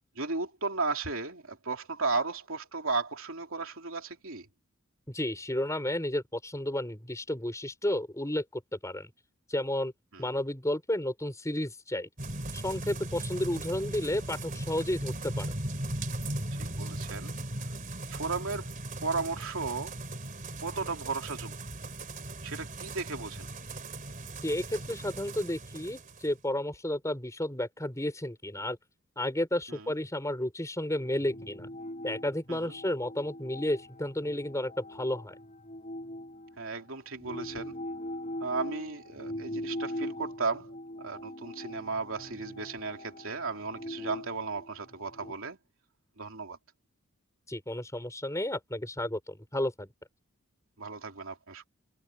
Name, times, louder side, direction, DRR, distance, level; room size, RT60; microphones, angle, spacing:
voice 1, 0.2-4.5 10.1-10.2 16.6-17.3 18.1-18.7 19.0-20.0 20.6-21.5 22.4-23.5 29.7-29.8 32.5-32.7 36.6-37.8 38.4-45.6 46.2-46.6 50.8-51.7, right 4 dB, 60° right, 3.4 m, -35 dB
voice 2, 5.1-9.1 9.5-9.9 10.2-12.1 12.5-15.5 24.4-28.8 29.2-31.7 32.0-35.4 47.5-49.9, left 1 dB, 15° left, 5.4 m, -32 dB
sound 1, 12.2-26.3, right 1 dB, 40° right, 3.0 m, -38 dB
sound 2, 30.9-36.7 37.2-45.3, left 1 dB, 30° left, 7.8 m, -41 dB
head